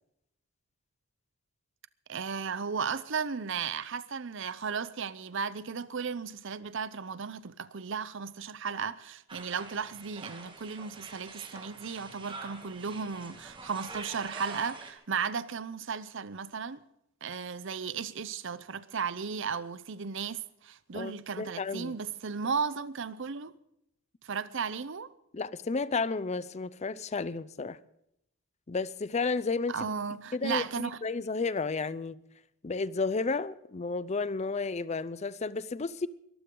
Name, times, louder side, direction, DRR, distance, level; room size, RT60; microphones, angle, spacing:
voice 1, 2.1-16.8 17.2-23.5 24.2-25.1 29.7-31.0, right 6 dB, 60° right, 0.7 m, -35 dB
sound 1, 9.3-14.9, right 3 dB, 25° right, 1.9 m, -45 dB
voice 2, 20.9-22.0 25.3-27.8 28.7-29.8 30.3-32.2 32.6-36.1, left 4 dB, 35° left, 0.5 m, -32 dB
22.5 x 14.0 x 3.9 m
head